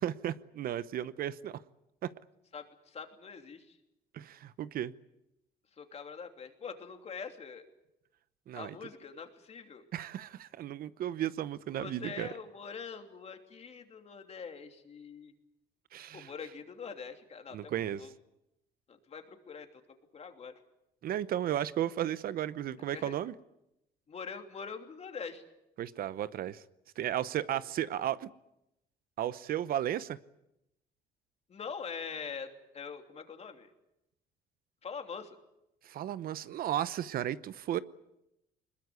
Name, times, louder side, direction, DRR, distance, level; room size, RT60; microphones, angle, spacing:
voice 1, 0.0-1.6 2.0-2.1 4.1-4.9 8.5-8.7 9.9-12.3 15.9-16.3 17.5-18.0 21.0-23.3 25.8-26.6 27.0-28.3 29.2-30.2 35.8-37.8, right 11 dB, 60° right, 16 dB, 0.8 m, -34 dB
voice 2, 2.5-3.8 5.7-7.7 8.5-9.8 11.8-15.3 16.1-18.1 18.9-19.8 20.1-20.6 22.9-23.1 24.1-25.4 27.5-27.6 31.5-33.7 34.8-35.4, left 6 dB, 40° left, 5 dB, 3.0 m, -44 dB
21.5 x 21.0 x 9.6 m, 0.87 s
cardioid pair, 110°, 17 cm